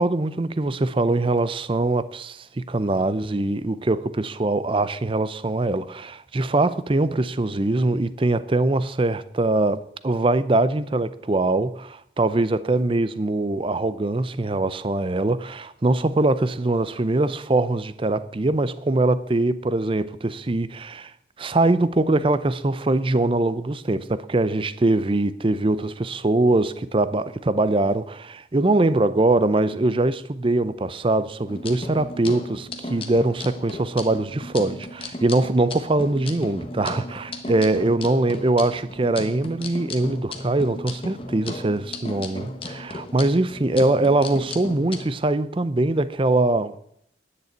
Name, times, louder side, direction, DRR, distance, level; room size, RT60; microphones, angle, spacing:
voice 1, 0.0-21.1 21.4-46.8, right 2 dB, 30° right, 0.5 m, -22 dB
sound 1, 31.5-45.0, left 2 dB, 30° left, 1.3 m, -36 dB
10.5 x 6.9 x 8.0 m
head